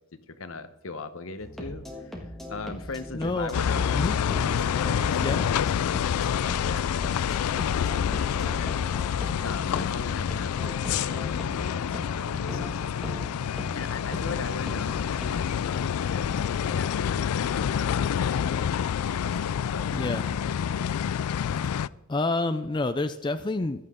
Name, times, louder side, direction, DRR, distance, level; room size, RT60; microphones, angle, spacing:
voice 1, 0.1-2.2 2.5-3.9 4.5-8.7 9.4-18.7 19.2-20.2, left 4 dB, 65° left, 11 dB, 0.9 m, -39 dB
sound 1, 1.4-15.6, equal, ahead, 1.8 m, -40 dB
voice 2, 3.1-3.5 3.9-4.5 5.2-5.5 19.9-20.2 22.1-23.9, left 2 dB, 20° left, 9 dB, 0.4 m, -28 dB
sound 2, 3.5-21.9, left 8 dB, 90° left, 0.4 m, -27 dB
15.0 x 11.5 x 3.7 m, 0.90 s
head